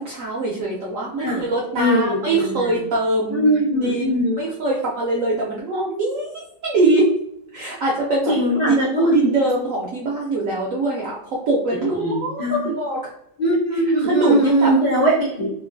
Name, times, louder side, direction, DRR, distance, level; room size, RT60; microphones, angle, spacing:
voice 1, 0.0-7.1 7.5-8.3 8.7-11.2 11.5-13.0 13.7-14.7, right 2 dB, 75° right, -3 dB, 0.7 m, -23 dB
voice 2, 1.8-2.8 3.3-4.4 8.3-9.3 11.8-12.6 13.4-15.5, equal, 65° left, -8 dB, 0.4 m, -20 dB
3.0 x 2.4 x 2.5 m, 0.76 s
omnidirectional pair, 1.9 m